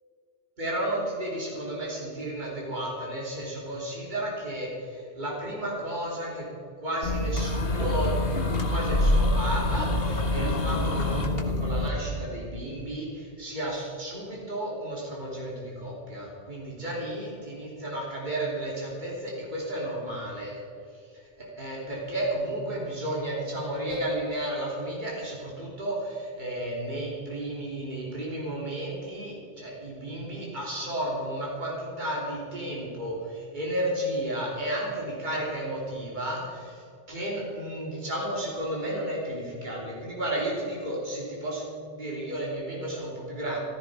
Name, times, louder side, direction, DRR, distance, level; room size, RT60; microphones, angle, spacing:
voice 1, 0.6-6.5 6.8-20.6 21.4-36.8 37.1-43.6, right 1 dB, 50° right, -4 dB, 3.6 m, -33 dB
sound 1, 7.0-11.9, left 1 dB, 70° left, 1.7 m, -26 dB
16.0 x 14.5 x 5.0 m, 2.4 s
omnidirectional pair, 1.0 m